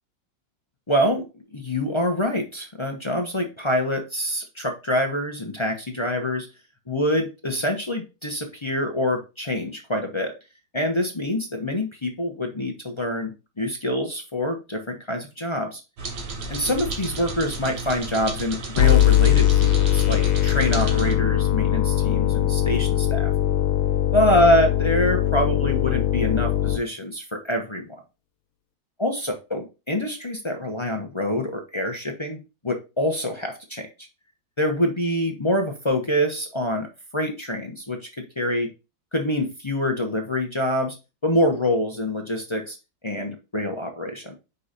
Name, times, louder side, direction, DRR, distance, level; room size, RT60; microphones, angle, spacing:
voice 1, 0.9-6.5 6.9-10.3 10.7-15.8 16.5-23.3 24.1-27.9 29.0-32.4 32.6-33.9 34.6-36.9 37.1-38.7 39.1-41.0 41.2-42.8 43.0-44.4, left 1 dB, 40° left, 2 dB, 0.4 m, -25 dB
sound 1, 16.0-21.1, right 3 dB, 60° right, 1.9 m, -33 dB
sound 2, 18.8-26.8, left 12 dB, 90° left, 1.5 m, -20 dB
5.5 x 4.2 x 5.0 m, 0.29 s
omnidirectional pair, 2.1 m